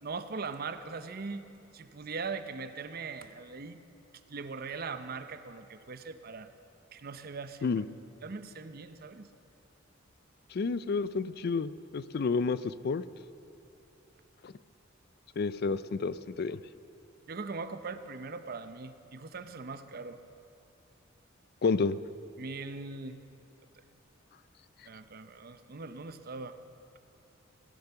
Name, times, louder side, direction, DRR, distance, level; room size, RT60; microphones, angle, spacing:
voice 1, 0.0-1.4 1.7-3.8 4.3-6.5 6.9-7.9 8.2-9.3 17.3-20.2 22.4-23.2 24.9-26.6, right 4 dB, 50° right, 11 dB, 0.7 m, -40 dB
voice 2, 10.5-13.0 14.4-14.5 15.4-16.6 21.6-22.0, left 4 dB, 50° left, 16 dB, 0.4 m, -30 dB
17.0 x 10.5 x 6.8 m, 2.7 s
head